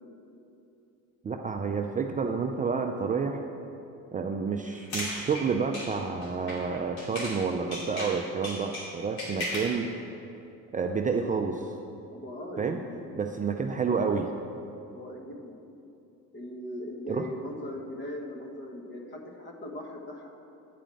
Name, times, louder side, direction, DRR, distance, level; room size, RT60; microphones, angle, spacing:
voice 1, 1.2-3.4 4.1-9.9 10.7-11.8 12.6-12.8 13.1-14.3 17.1-17.3, right 5 dB, 25° right, 4 dB, 0.5 m, -29 dB
sound 1, 4.7-7.4 7.7-9.8, left 1 dB, 75° left, 2.5 m, -36 dB
voice 2, 12.1-13.1 14.9-15.5 16.3-20.3, left 1 dB, 35° left, 1 dB, 1.5 m, -39 dB
9.3 x 5.0 x 7.6 m, 2.8 s
supercardioid pair, 85°, 34 cm